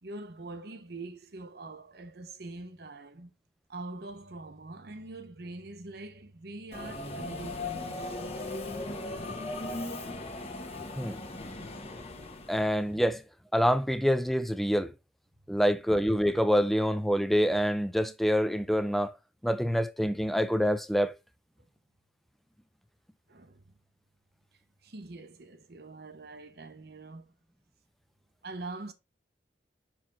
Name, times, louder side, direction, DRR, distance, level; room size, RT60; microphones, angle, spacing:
voice 1, 0.0-3.3 3.7-8.3 23.3-23.8 24.8-27.3 28.4-28.9, right 2 dB, 60° right, 0.9 m, -44 dB
Subway metro underground, 6.7-12.9, left 2 dB, 35° left, 1.1 m, -38 dB
voice 2, 12.5-13.2 13.5-14.9 15.5-19.1 19.4-21.1, equal, ahead, 0.5 m, -26 dB
5.9 x 4.6 x 3.6 m
head